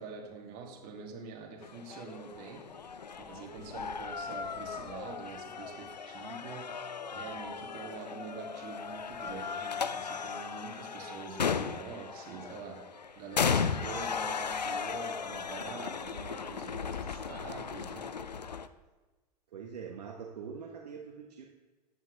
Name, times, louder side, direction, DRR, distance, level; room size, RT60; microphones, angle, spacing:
voice 1, 0.0-2.6 3.3-6.7 7.1-12.8 13.1-18.1, right 5 dB, 45° right, 0 dB, 2.8 m, -45 dB
sound 1, 1.6-18.7, left 6 dB, 90° left, 0.6 m, -36 dB
voice 2, 19.5-21.4, right 6 dB, 70° right, 1 dB, 1.3 m, -44 dB
14.5 x 10.5 x 3.4 m, 1.2 s
figure-of-eight pair, 90°, 21 cm